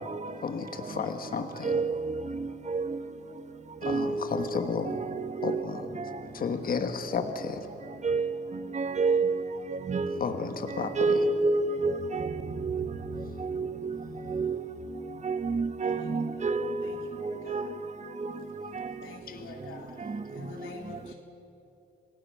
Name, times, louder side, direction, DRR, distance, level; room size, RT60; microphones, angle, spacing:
voice 1, 0.4-1.7 3.8-5.0 5.4-5.9 6.3-7.7 10.2-11.1 19.3-19.4, left 5 dB, 45° left, 1.6 m, -32 dB
voice 2, 1.6-2.2 2.7-2.9 3.8-5.6 8.0-8.3 8.7-9.4 9.7-10.2 11.0-12.9 13.4-13.9 14.3-14.6 15.2-16.9 17.2-17.7 18.2-18.3 18.7-18.8, right 4 dB, 35° right, 1.1 m, -28 dB
voice 3, 15.8-16.5 16.8-17.7 19.0-21.1, left 4 dB, 85° left, 3.6 m, -47 dB
26.5 x 18.0 x 5.8 m
cardioid pair, 90°, 20 cm